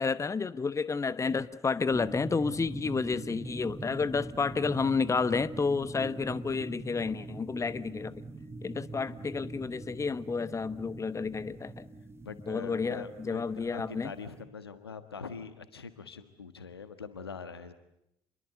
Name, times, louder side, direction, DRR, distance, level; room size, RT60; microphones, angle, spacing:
voice 1, 0.0-8.1 8.6-11.9 12.5-14.1, left 4 dB, 25° left, 16 dB, 1.0 m, -31 dB
sound 1, 1.9-14.4, right 2 dB, 20° right, 2.7 m, -43 dB
voice 2, 12.2-17.7, left 5 dB, 90° left, 11 dB, 1.4 m, -43 dB
28.5 x 22.5 x 7.8 m, 0.80 s
figure-of-eight pair, 50°, 13 cm